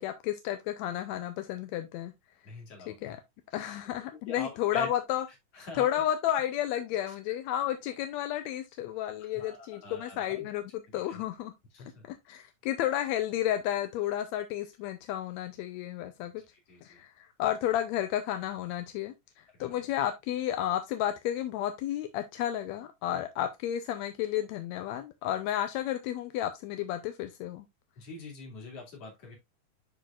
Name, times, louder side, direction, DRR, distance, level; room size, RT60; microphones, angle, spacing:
voice 1, 0.0-2.1 2.9-3.2 3.5-5.3 5.8-11.5 12.1-16.3 16.8-27.7, left 11 dB, 75° left, 1.7 m, -32 dB
voice 2, 2.4-3.1 3.6-3.8 4.3-4.9 5.5-5.8 9.3-10.5 11.1-11.2 11.7-12.0 16.5-17.0 19.6-19.8 28.0-29.4, left 3 dB, 50° left, 3.4 m, -44 dB
11.0 x 3.9 x 2.4 m
omnidirectional pair, 3.6 m